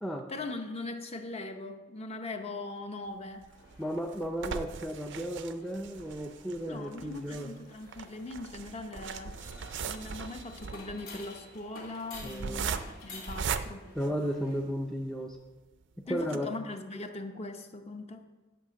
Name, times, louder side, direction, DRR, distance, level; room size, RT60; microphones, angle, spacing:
voice 1, 0.3-3.5 6.6-9.4 9.9-13.9 16.1-18.2, left 2 dB, 30° left, 6 dB, 0.7 m, -40 dB
sound 1, 3.4-14.8 15.3-15.4 15.7-15.8 16.2-16.4, right 6 dB, 60° right, 0.4 m, -39 dB
sound 2, 3.5-14.6, left 2 dB, 85° left, 3.0 m, -52 dB
voice 2, 3.8-7.5 12.2-12.7 13.9-15.4 16.1-16.5, equal, ahead, 1 dB, 0.4 m, -34 dB
10.0 x 5.8 x 6.3 m, 1.2 s
head